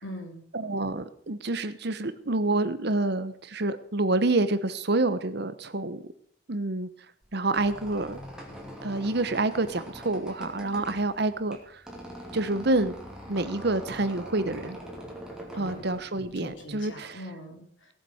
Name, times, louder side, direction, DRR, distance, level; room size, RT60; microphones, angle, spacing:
voice 1, 0.0-0.5 15.5-15.8 16.4-17.9, equal, 75° left, 2 dB, 3.8 m, -42 dB
voice 2, 0.5-6.0 6.5-6.9 7.3-8.2 8.8-11.8 12.3-12.9 13.3-14.8 15.6-17.2, right 2 dB, 55° right, 13 dB, 1.1 m, -28 dB
Squeak, 7.2-16.8, equal, 5° right, 2.8 m, -43 dB
18.0 x 7.7 x 6.4 m, 0.63 s
head